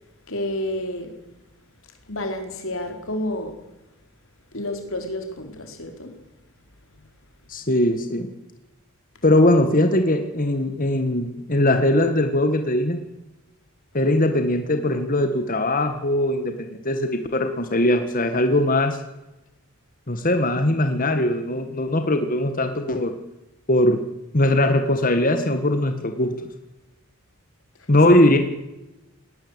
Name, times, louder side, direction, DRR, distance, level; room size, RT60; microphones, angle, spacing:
voice 1, 0.3-1.2 2.1-3.6 4.5-6.2 6.9-7.0 7.6-7.7, left 1 dB, 65° left, 4.4 m, -30 dB
voice 2, 7.5-8.3 9.2-13.0 13.9-19.0 20.1-23.1 23.7-24.0 24.3-26.3 27.9-28.4, left 1 dB, 40° left, 1.8 m, -20 dB
20.0 x 18.5 x 8.3 m
head